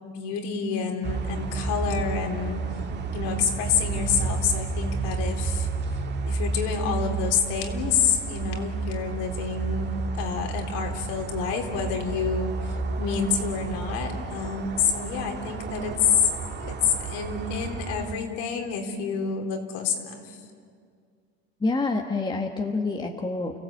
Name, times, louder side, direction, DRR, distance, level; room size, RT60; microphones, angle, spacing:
voice 1, 0.0-2.6 3.1-5.7 6.3-9.9 10.2-16.3 16.6-20.4, left 6 dB, 75° left, 3 dB, 3.6 m, -28 dB
sound 1, 1.0-18.1, right 4 dB, 35° right, 2.1 m, -31 dB
voice 2, 21.6-23.6, left 3 dB, 15° left, 3 dB, 1.5 m, -27 dB
29.5 x 15.5 x 8.6 m, 2.2 s
supercardioid pair, 110°, 31 cm